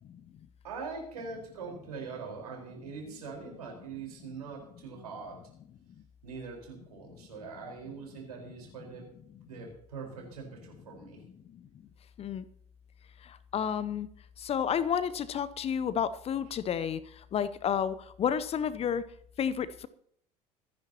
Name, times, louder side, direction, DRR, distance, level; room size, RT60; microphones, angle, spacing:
voice 1, 0.6-5.4 6.2-9.1 9.5-11.2, right 5 dB, 70° right, 0 dB, 4.5 m, -42 dB
voice 2, 13.2-14.1 14.4-19.0 19.4-19.9, left 8 dB, 30° left, 16 dB, 0.7 m, -31 dB
25.5 x 10.5 x 2.9 m, 0.66 s
figure-of-eight pair, 70°, 20 cm